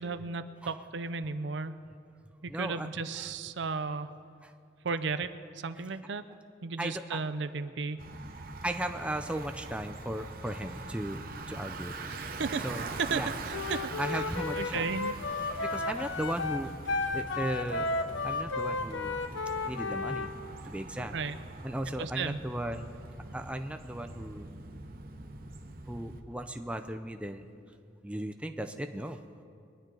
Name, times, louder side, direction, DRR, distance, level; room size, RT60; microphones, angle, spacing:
voice 1, 0.0-1.8 2.4-4.2 4.8-6.2 6.6-8.1 12.1-12.6 13.0-14.2 14.6-15.2 21.1-21.4 22.0-22.4, right 4 dB, 70° right, 12 dB, 0.5 m, -35 dB
voice 2, 2.5-2.9 3.2-3.3 4.4-4.5 6.8-7.2 8.6-12.3 12.6-12.8 13.1-13.3 14.0-14.9 15.6-16.7 17.1-17.9 18.2-19.2 19.7-20.3 20.6-21.1 21.6-22.9 23.3-24.5 25.9-27.5 28.0-29.2, right 1 dB, 5° right, 6 dB, 0.5 m, -36 dB
Bicycle, 8.0-26.2, right 3 dB, 50° right, 0.9 m, -43 dB
Wind instrument woodwind instrument, 13.5-20.3, left 3 dB, 85° left, 0.7 m, -33 dB
22.5 x 10.5 x 3.9 m, 2.4 s
head